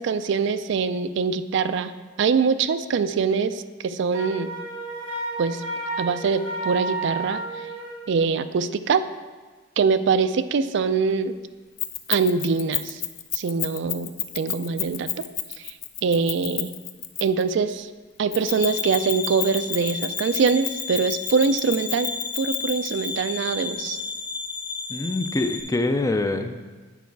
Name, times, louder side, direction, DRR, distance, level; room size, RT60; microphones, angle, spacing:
voice 1, 0.0-1.9 2.2-4.5 5.4-5.6 6.0-7.4 8.1-9.0 9.8-11.4 12.1-13.0 13.3-15.2 15.6-15.7 16.0-16.7 17.2-17.9 18.2-22.1 22.4-24.0, right 5 dB, 65° right, 11 dB, 0.4 m, -23 dB
Wind instrument woodwind instrument, 4.1-8.1, right 2 dB, 90° right, 1.7 m, -31 dB
Keys jangling, 11.8-17.5 18.3-23.1, left 13 dB, 80° left, 0.6 m, -30 dB
sound 1, 18.5-25.6, left 4 dB, 60° left, 1.1 m, -32 dB
voice 2, 24.9-26.6, left 2 dB, 15° left, 8 dB, 0.4 m, -25 dB
9.2 x 4.7 x 4.6 m, 1.3 s
head